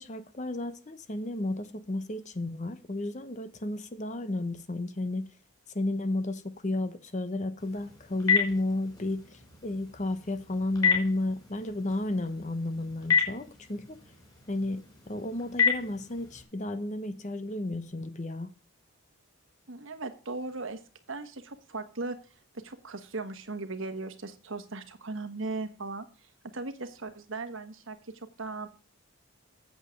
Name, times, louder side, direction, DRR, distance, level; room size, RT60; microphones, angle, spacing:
voice 1, 0.0-5.3 5.7-14.0 14.5-18.5, left 2 dB, 35° left, 0.8 m, -33 dB
Telephone, 7.6-16.4, left 6 dB, 15° left, 4.2 m, -31 dB
voice 2, 19.7-20.8 21.1-22.2 22.5-28.7, right 3 dB, 60° right, 1.3 m, -38 dB
8.4 x 7.8 x 6.4 m
head